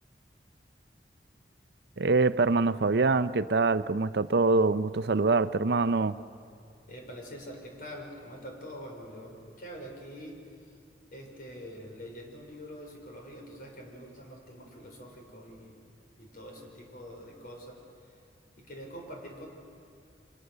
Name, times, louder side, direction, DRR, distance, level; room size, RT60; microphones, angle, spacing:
voice 1, 2.0-6.1, right 3 dB, 65° right, 13 dB, 0.6 m, -24 dB
voice 2, 6.9-10.7 11.1-15.8 16.2-17.8 18.6-19.5, equal, 55° left, 1 dB, 5.4 m, -45 dB
28.5 x 25.5 x 6.8 m, 2.4 s
head